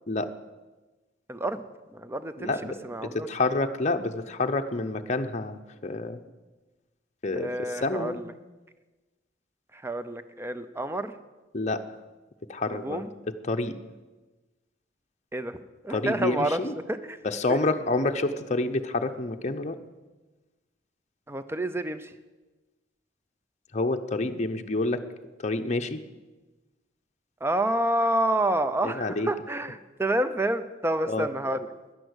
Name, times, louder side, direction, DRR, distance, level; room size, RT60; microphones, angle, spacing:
voice 1, 1.3-1.7 1.9-2.5 2.8-3.3 7.3-8.3 9.7-11.1 12.7-13.1 15.3-16.6 16.9-17.2 21.3-22.1 27.4-31.7, right 1 dB, 10° right, 11 dB, 0.6 m, -28 dB
voice 2, 2.4-2.7 3.0-6.2 7.2-8.2 11.5-11.8 12.5-13.0 13.4-13.7 15.9-16.7 17.2-19.8 23.7-25.0 25.4-26.0 28.8-29.3 31.1-31.3, left 2 dB, 35° left, 6 dB, 0.7 m, -28 dB
11.0 x 10.5 x 8.1 m, 1.2 s
head